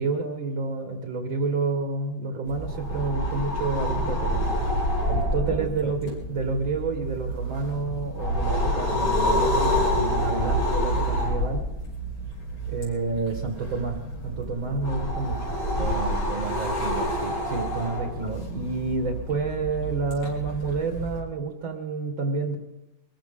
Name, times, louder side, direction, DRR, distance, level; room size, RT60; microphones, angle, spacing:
voice 1, 0.0-4.5 5.1-11.6 12.7-14.0 14.2-15.6 17.5-22.6, right 3 dB, 70° right, 3 dB, 2.6 m, -29 dB
sound 1, 2.5-21.2, equal, 70° left, 5.8 m, -28 dB
voice 2, 5.5-6.1 15.8-17.4 18.2-18.6, right 5 dB, 85° right, 6 dB, 0.4 m, -35 dB
23.5 x 15.5 x 3.8 m, 0.91 s
omnidirectional pair, 2.3 m